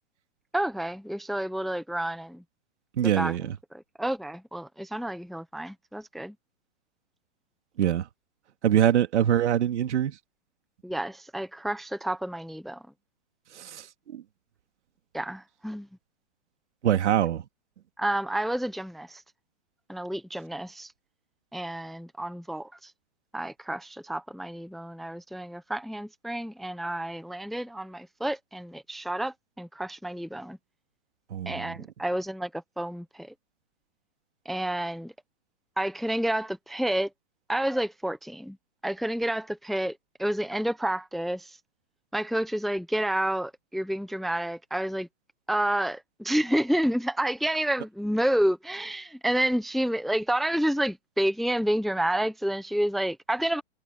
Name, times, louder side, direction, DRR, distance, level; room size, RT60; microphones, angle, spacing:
voice 1, 0.5-2.4 3.0-3.4 3.7-6.4 10.8-12.8 15.1-15.9 18.0-19.2 19.9-20.9 21.5-22.9 23.3-30.6 31.5-33.3 34.5-35.1 35.8-37.1 37.5-38.6 38.8-41.5 42.1-45.1 45.5-53.6, right 1 dB, ahead, 0.7 m, -29 dB
voice 2, 3.0-3.6 7.8-8.1 8.6-10.2 13.5-14.2 16.8-17.4 31.3-31.8, right 10 dB, 75° right, 3.0 m, -24 dB
hypercardioid pair, 165°, 35 cm